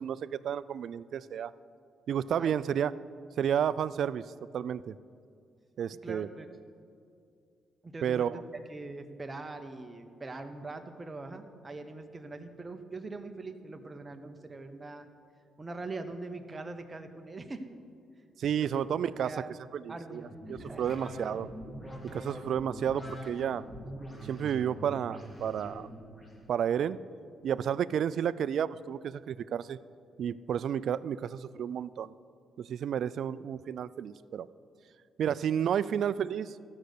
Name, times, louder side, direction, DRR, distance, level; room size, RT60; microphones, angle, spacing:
voice 1, 0.0-1.5 2.1-2.9 3.4-4.2 4.5-4.9 5.8-6.3 8.0-8.4 18.4-19.4 19.7-20.2 20.5-21.5 22.1-23.6 24.2-25.9 26.5-27.0 27.4-29.8 30.2-32.1 32.6-34.5 35.2-36.6, right 9 dB, 65° right, 17 dB, 0.3 m, -31 dB
voice 2, 6.0-6.5 7.8-8.3 8.7-15.1 15.6-17.6 18.6-19.6 19.9-20.9, right 3 dB, 25° right, 6 dB, 1.0 m, -42 dB
sound 1, 20.1-26.5, equal, 15° left, 2.1 m, -44 dB
14.0 x 6.4 x 6.6 m, 2.3 s
cardioid pair, 90°, 0 cm